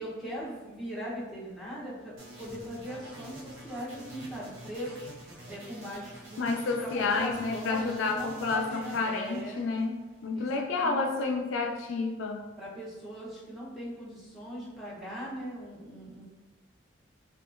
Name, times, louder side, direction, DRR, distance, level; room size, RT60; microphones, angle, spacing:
voice 1, 0.0-5.1 5.5-9.6 10.3-10.5 10.8-11.0 12.6-16.3, equal, ahead, -10 dB, 0.7 m, -40 dB
sound 1, 2.2-10.2, right 1 dB, 85° right, 0.6 m, -47 dB
voice 2, 6.4-12.5, left 3 dB, 80° left, 3 dB, 0.3 m, -30 dB
2.7 x 2.3 x 2.4 m, 1.2 s
head